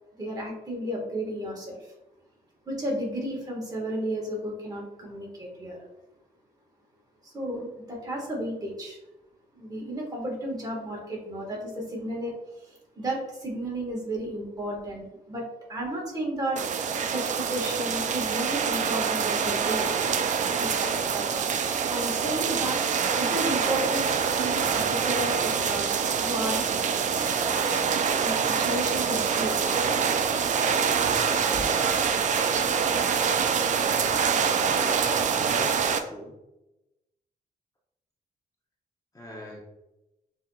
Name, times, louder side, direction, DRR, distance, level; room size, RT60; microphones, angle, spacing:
voice 1, 0.2-1.7 2.7-5.8 7.2-9.0 9.5-12.3 12.6-15.4 15.7-19.9 20.6-21.3 21.6-22.8 23.3-26.6 28.2-30.1 31.5-31.6, right 1 dB, 25° right, -3 dB, 1.5 m, -33 dB
sound 1, 16.6-36.0, right 6 dB, 50° right, 0.4 m, -25 dB
voice 2, 34.5-36.3 39.1-39.6, equal, 20° left, -3 dB, 0.9 m, -42 dB
7.0 x 2.8 x 2.3 m, 0.94 s
cardioid pair, 115°, 16 cm